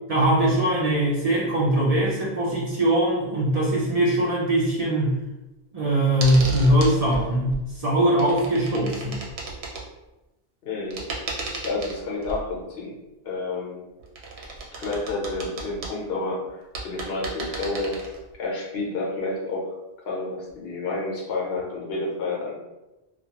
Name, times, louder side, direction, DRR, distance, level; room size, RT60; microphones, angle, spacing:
voice 1, 0.1-5.2 5.7-9.2, right 1 dB, 50° right, -6 dB, 0.5 m, -21 dB
sound 1, 6.2-7.6 7.9-9.8 10.9-12.5 14.0-15.9 16.5-16.6 16.7-18.4 20.5-20.6, right 3 dB, 85° right, 0.9 m, -34 dB
voice 2, 10.6-11.1 11.3-12.9 13.2-13.8 14.7-18.0 18.4-19.7 20.1-22.5, left 3 dB, 75° left, -3 dB, 0.9 m, -30 dB
2.3 x 2.3 x 2.8 m, 1.0 s
omnidirectional pair, 1.0 m